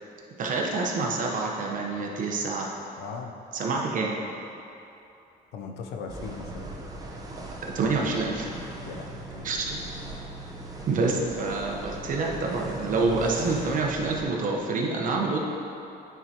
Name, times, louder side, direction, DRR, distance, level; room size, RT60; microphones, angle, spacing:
voice 1, 0.4-2.7 3.5-4.2 7.7-8.6 9.4-9.8 10.9-15.4, right 3 dB, 50° right, -1 dB, 1.0 m, -27 dB
voice 2, 3.0-3.3 5.5-6.7 8.8-9.5, left 5 dB, 85° left, 3 dB, 0.6 m, -38 dB
sound 1, 6.1-14.2, right 2 dB, 20° right, 0.9 m, -39 dB
9.3 x 4.6 x 2.9 m, 2.9 s
cardioid pair, 110°, 17 cm